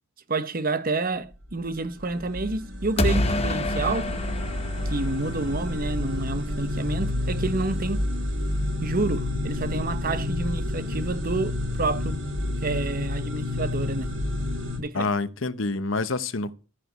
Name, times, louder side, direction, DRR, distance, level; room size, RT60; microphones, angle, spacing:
voice 1, 0.3-4.1 4.8-8.1 8.8-12.2 12.6-14.1 14.8-15.1, right 3 dB, 45° right, 1.0 m, -29 dB
sound 1, 1.3-14.8, left 1 dB, 65° right, 7.7 m, -29 dB
sound 2, 3.0-5.9, left 2 dB, 30° left, 1.0 m, -27 dB
voice 2, 14.9-16.5, left 3 dB, 75° left, 0.9 m, -27 dB
15.0 x 5.1 x 8.0 m
head